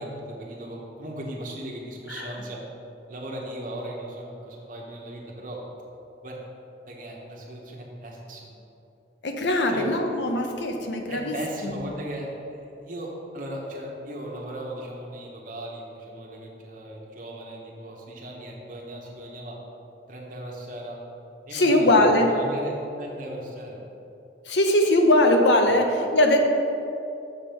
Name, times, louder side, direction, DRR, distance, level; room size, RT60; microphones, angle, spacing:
voice 1, 0.0-2.6 3.1-5.6 6.2-6.4 6.9-8.5 9.7-9.9 11.1-19.6 20.1-21.0 21.5-23.8 25.7-25.8, right 1 dB, 45° right, -2 dB, 1.2 m, -37 dB
voice 2, 9.2-11.4 11.6-11.7 21.5-22.3 24.5-25.9 26.1-26.4, left 1 dB, 80° left, 3 dB, 0.9 m, -20 dB
6.7 x 6.1 x 5.2 m, 2.8 s
head